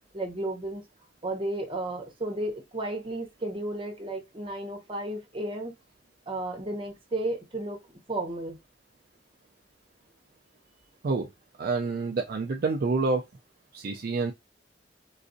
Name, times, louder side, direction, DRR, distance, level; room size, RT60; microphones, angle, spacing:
voice 1, 0.1-0.8 1.2-5.7 6.3-7.8 8.1-8.6, right 1 dB, 30° right, 0.9 m, -33 dB
voice 2, 11.6-13.2 13.7-14.3, right 3 dB, 55° right, 0.4 m, -27 dB
3.9 x 2.5 x 2.6 m
head